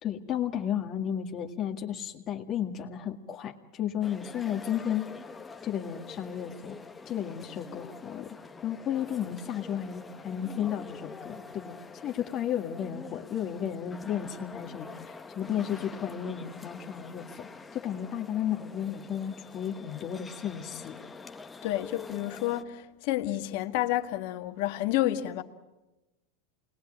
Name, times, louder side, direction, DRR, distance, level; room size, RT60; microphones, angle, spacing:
voice 1, 0.0-5.1 5.6-6.8 7.1-8.3 8.6-21.0, left 9 dB, 40° left, 1.9 m, -33 dB
sound 1, 4.0-22.6, left 4 dB, 15° left, 1.3 m, -46 dB
voice 2, 21.6-25.4, left 14 dB, 60° left, 1.8 m, -30 dB
28.0 x 21.0 x 8.9 m
hypercardioid pair, 105°, 0 cm